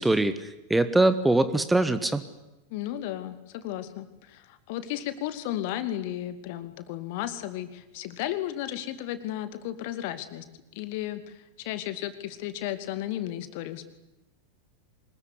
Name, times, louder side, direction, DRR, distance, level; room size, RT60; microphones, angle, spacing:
voice 1, 0.0-2.2, right 2 dB, 5° right, 13 dB, 1.5 m, -23 dB
voice 2, 2.7-10.5 10.7-13.9, left 13 dB, 50° left, 11 dB, 2.6 m, -34 dB
25.5 x 21.5 x 9.8 m, 0.96 s
figure-of-eight pair, 90°, 0 cm